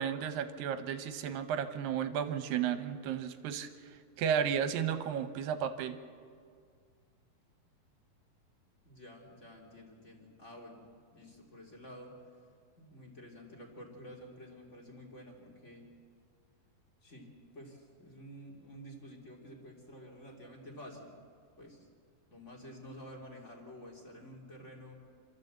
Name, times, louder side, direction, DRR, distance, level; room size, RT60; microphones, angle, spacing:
voice 1, 0.0-3.7 4.2-6.0, right 8 dB, 75° right, 9 dB, 2.4 m, -33 dB
voice 2, 8.8-10.8 11.1-12.2 12.8-15.9 17.0-21.1 21.6-21.9 22.3-24.9, equal, 20° left, 0 dB, 2.4 m, -50 dB
27.0 x 13.0 x 7.9 m, 2.1 s
omnidirectional pair, 4.4 m